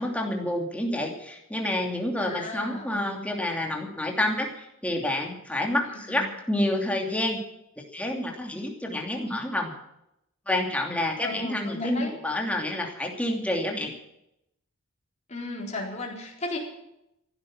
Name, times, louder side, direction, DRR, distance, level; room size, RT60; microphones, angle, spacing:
voice 1, 0.0-7.4 7.9-9.7 10.5-13.9, left 1 dB, 5° left, 1 dB, 2.8 m, -28 dB
voice 2, 2.2-3.3 5.8-6.3 9.2-9.4 11.2-12.1 15.3-16.6, left 2 dB, 30° left, -2 dB, 4.2 m, -35 dB
15.5 x 12.0 x 7.4 m, 0.82 s
head